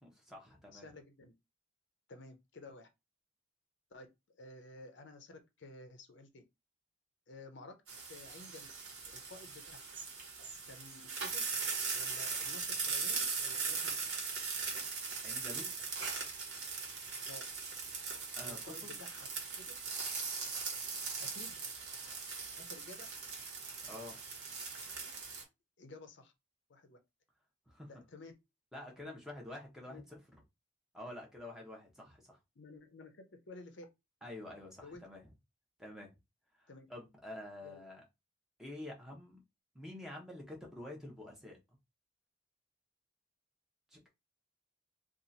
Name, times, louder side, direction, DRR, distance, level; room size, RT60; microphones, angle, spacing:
voice 1, 0.0-0.9 15.2-15.7 18.4-19.0 23.9-24.2 27.7-27.9 28.7-30.2 30.9-32.4 34.2-35.2 35.8-36.1 36.6-38.0 38.6-39.4 39.7-41.6 43.9-44.1, left 1 dB, 5° right, 0.9 m, -48 dB
voice 2, 0.7-1.3 2.1-2.9 3.9-6.4 7.3-7.8 8.1-8.7 9.1-9.9 10.7-11.5 11.9-13.9 17.3-17.4 18.4-19.3 19.6-19.7 21.2-21.6 22.5-23.1 25.8-26.3 26.7-27.0 27.9-28.3 29.0-29.2 29.9-30.0 32.6-33.9 34.8-35.0 36.7-36.9 37.6-37.8, left 2 dB, 65° left, 0.6 m, -53 dB
sound 1, 7.9-25.4, right 5 dB, 55° right, 1.4 m, -40 dB
2.8 x 2.4 x 3.9 m
head